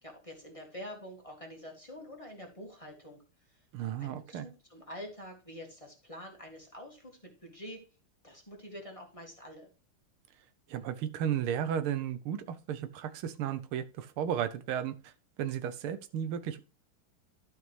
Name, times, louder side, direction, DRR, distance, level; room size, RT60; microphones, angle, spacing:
voice 1, 0.0-3.2 3.5-3.6 4.0-7.8 8.2-9.7, equal, 15° left, 0 dB, 1.8 m, -46 dB
voice 2, 3.7-4.5 10.7-15.1 15.4-16.6, right 9 dB, 85° right, 12 dB, 1.7 m, -34 dB
12.0 x 5.7 x 3.2 m, 0.33 s
omnidirectional pair, 2.3 m